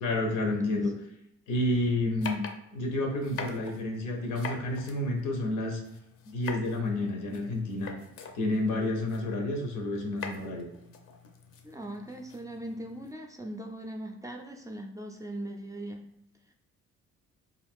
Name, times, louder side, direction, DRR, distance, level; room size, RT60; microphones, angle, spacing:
voice 1, 0.0-0.9 1.5-2.4 2.7-5.8 6.3-8.0 8.3-10.7, left 2 dB, 90° left, 3 dB, 0.7 m, -30 dB
sound 1, 2.2-13.1, left 5 dB, 50° left, 0.5 m, -45 dB
voice 2, 11.6-16.0, right 1 dB, 10° right, 3 dB, 0.3 m, -40 dB
2.4 x 2.3 x 3.5 m, 0.80 s
cardioid pair, 90°, 30 cm